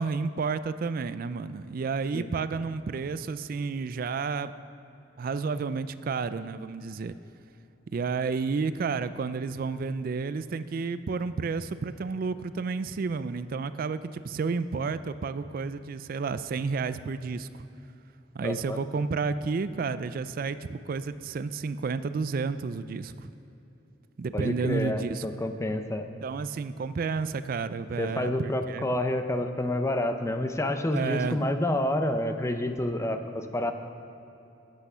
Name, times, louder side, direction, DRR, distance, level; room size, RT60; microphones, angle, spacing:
voice 1, 0.0-4.5 5.2-7.2 7.9-17.7 18.3-23.3 24.2-25.3 26.2-28.9 30.9-31.4, right 4 dB, 50° right, 13 dB, 0.4 m, -31 dB
voice 2, 18.4-18.8 24.3-26.1 28.0-33.7, left 1 dB, 15° left, 7 dB, 0.6 m, -28 dB
13.0 x 8.3 x 5.6 m, 3.0 s
head